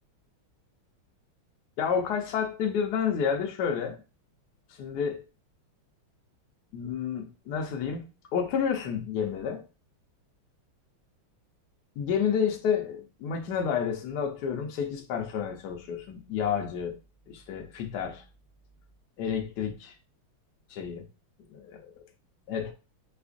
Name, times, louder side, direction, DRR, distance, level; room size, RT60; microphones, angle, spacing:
voice 1, 1.8-4.0 4.8-5.2 6.7-8.0 8.3-9.6 12.0-17.0 17.3-18.2 19.2-19.9 20.7-21.0 21.5-21.9 22.5-22.7, left 7 dB, 65° left, 1.1 m, -30 dB
4.9 x 2.4 x 2.4 m
omnidirectional pair, 2.3 m